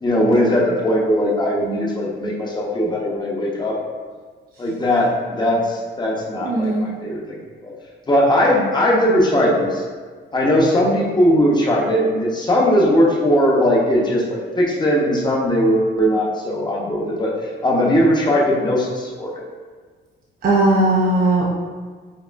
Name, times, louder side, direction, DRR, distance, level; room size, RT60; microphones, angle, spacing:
voice 1, 0.0-3.8 4.6-7.7 8.1-9.8 10.3-17.3 17.6-19.4, equal, 20° left, -3 dB, 0.9 m, -19 dB
voice 2, 6.4-6.9 20.4-21.5, right 2 dB, 50° right, -4 dB, 0.6 m, -17 dB
5.3 x 2.1 x 2.5 m, 1.5 s
cardioid pair, 90°, 20 cm